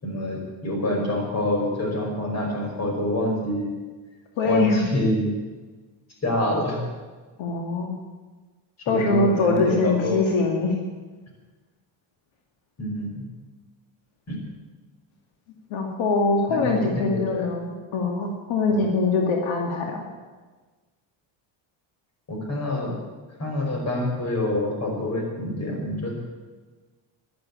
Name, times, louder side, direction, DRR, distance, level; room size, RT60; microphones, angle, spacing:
voice 1, 0.0-3.7 4.4-5.3 6.2-6.8 8.9-10.2 12.8-13.2 14.3-14.4 16.5-17.5 18.7-18.8 22.3-23.0 23.4-26.2, left 1 dB, 35° left, 0 dB, 5.2 m, -26 dB
voice 2, 4.4-4.9 7.4-8.0 8.9-10.7 15.7-20.0, left 3 dB, 75° left, 1 dB, 2.3 m, -23 dB
13.0 x 11.5 x 8.5 m, 1.3 s
cardioid pair, 130°, 46 cm